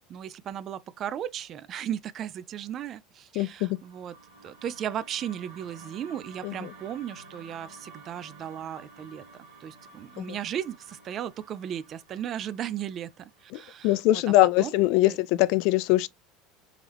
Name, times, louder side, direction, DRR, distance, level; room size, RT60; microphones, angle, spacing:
voice 1, 0.0-4.2 4.4-14.7 15.0-15.2, right 10 dB, 40° right, 0.4 m, -36 dB
voice 2, 3.4-3.8 6.4-6.5 10.2-10.3 13.5-16.1, left 16 dB, 65° left, 0.3 m, -23 dB
sound 1, 3.5-13.8, right 3 dB, 85° right, 1.4 m, -51 dB
3.7 x 3.0 x 3.3 m
cardioid pair, 140°, 0 cm